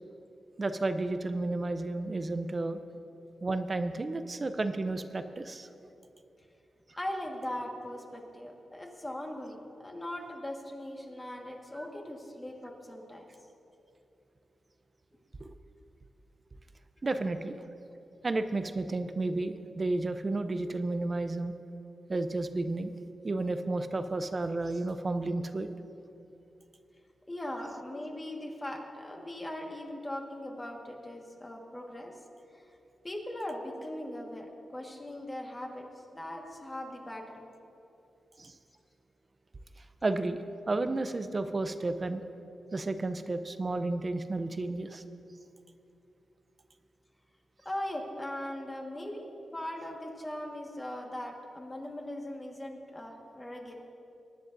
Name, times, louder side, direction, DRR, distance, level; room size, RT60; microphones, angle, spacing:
voice 1, 0.6-2.8 3.4-5.7 11.8-11.9 15.4-15.6 17.0-17.6 18.2-21.5 22.1-22.9 23.2-25.7 38.4-38.5 40.0-42.2 42.7-45.0, right 2 dB, 30° right, 10 dB, 0.5 m, -32 dB
voice 2, 7.0-9.6 9.8-13.2 27.3-32.1 32.5-32.7 33.0-35.9 36.1-37.5 47.6-53.8, left 1 dB, 15° left, 0 dB, 1.6 m, -39 dB
23.0 x 10.5 x 2.6 m, 2.9 s
wide cardioid pair, 120°, 0 cm